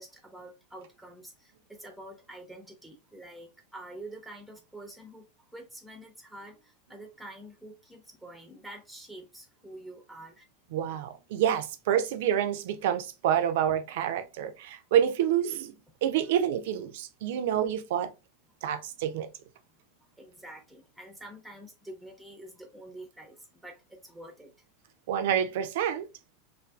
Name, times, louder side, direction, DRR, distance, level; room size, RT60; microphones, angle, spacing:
voice 1, 0.0-10.5 20.2-24.5, right 1 dB, ahead, 0.6 m, -47 dB
voice 2, 10.7-15.7 16.0-18.1 18.6-19.3 25.1-26.1, right 9 dB, 60° right, 0.4 m, -28 dB
2.5 x 2.4 x 2.3 m
figure-of-eight pair, 90°, 0 cm